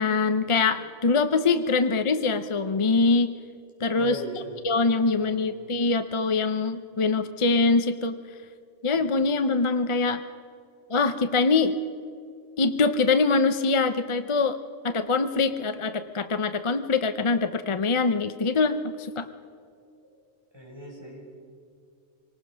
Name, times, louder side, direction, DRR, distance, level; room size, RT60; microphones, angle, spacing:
voice 1, 0.0-3.3 3.8-4.2 4.6-8.2 8.8-10.2 10.9-11.7 12.6-14.6 14.8-19.3, left 4 dB, 35° left, 9 dB, 0.6 m, -23 dB
voice 2, 3.8-4.5 5.1-5.5 6.9-7.1 8.9-9.1 20.5-21.3, right 1 dB, 20° right, -3 dB, 5.9 m, -39 dB
25.5 x 18.5 x 6.2 m, 2.3 s
omnidirectional pair, 1.2 m